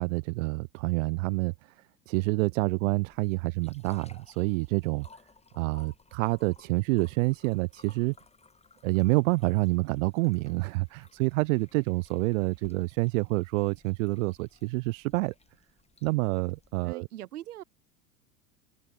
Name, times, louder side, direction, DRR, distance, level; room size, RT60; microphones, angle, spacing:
voice 1, 0.0-5.1 5.6-8.1 8.8-15.3 16.0-17.1, right 25 dB, 55° right, 0.9 m, -28 dB
sound 1, 2.6-16.8, left 4 dB, 15° left, 6.0 m, -59 dB
voice 2, 16.8-17.6, right 13 dB, 70° right, 4.7 m, -41 dB
hypercardioid pair, 85°, 47 cm